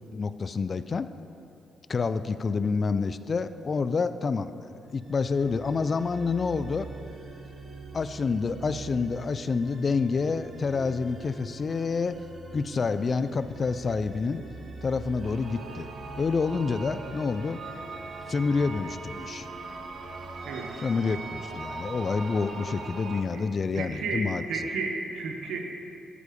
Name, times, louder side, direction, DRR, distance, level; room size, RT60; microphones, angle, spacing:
voice 1, 0.1-1.1 1.9-4.5 4.9-6.9 7.9-12.2 12.5-14.4 14.8-15.9 16.2-17.6 18.3-19.5 20.8-24.4, left 4 dB, 40° left, 12 dB, 0.3 m, -28 dB
sound 1, 5.0-22.1, right 3 dB, 40° right, 1.4 m, -45 dB
sound 2, 15.2-23.2, right 3 dB, 60° right, 0.8 m, -40 dB
voice 2, 23.7-25.6, right 4 dB, 85° right, 2 dB, 1.1 m, -32 dB
13.5 x 4.6 x 5.1 m, 2.6 s
cardioid pair, 90°, 0 cm